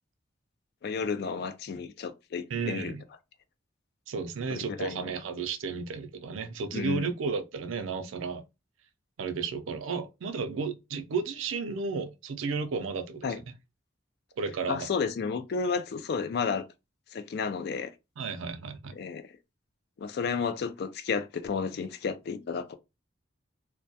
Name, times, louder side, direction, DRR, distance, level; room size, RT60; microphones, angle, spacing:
voice 1, 0.8-3.0 4.5-5.1 6.7-7.1 13.2-13.4 14.7-16.7 17.1-17.9 19.0-19.2 20.0-22.7, left 5 dB, 55° left, 0.3 m, -32 dB
voice 2, 2.5-3.0 4.1-8.4 9.2-13.4 14.4-14.9 15.7-15.8 18.2-19.0, right 5 dB, 90° right, 0.4 m, -33 dB
2.2 x 2.1 x 2.6 m
head